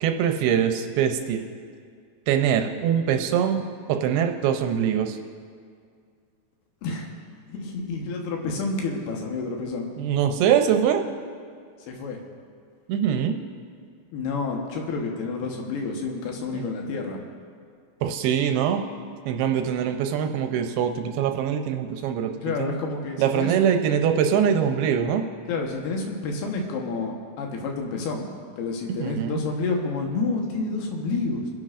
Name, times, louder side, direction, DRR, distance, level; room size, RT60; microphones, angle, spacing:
voice 1, 0.0-1.4 2.3-5.2 10.0-11.0 12.9-13.4 16.5-16.7 18.0-18.8 19.3-22.3 22.6-22.7 23.2-25.2 29.0-29.4, right 8 dB, 80° right, 6 dB, 2.5 m, -23 dB
voice 2, 6.8-7.1 7.5-9.9 11.9-12.2 14.1-17.2 22.4-23.7 25.5-31.5, left 3 dB, 75° left, 1 dB, 3.1 m, -29 dB
28.5 x 10.5 x 2.5 m, 2.2 s
omnidirectional pair, 4.7 m